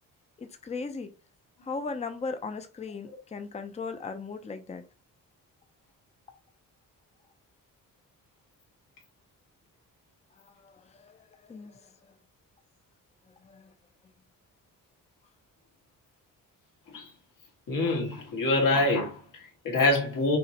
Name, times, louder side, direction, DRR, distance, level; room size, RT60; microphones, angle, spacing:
voice 1, 0.4-1.1 1.6-4.8 10.4-11.9 13.4-13.7, left 4 dB, 20° left, 0.5 m, -38 dB
voice 2, 17.7-20.4, left 2 dB, 75° left, 2.1 m, -26 dB
5.5 x 3.1 x 2.9 m
cardioid pair, 120°, 33 cm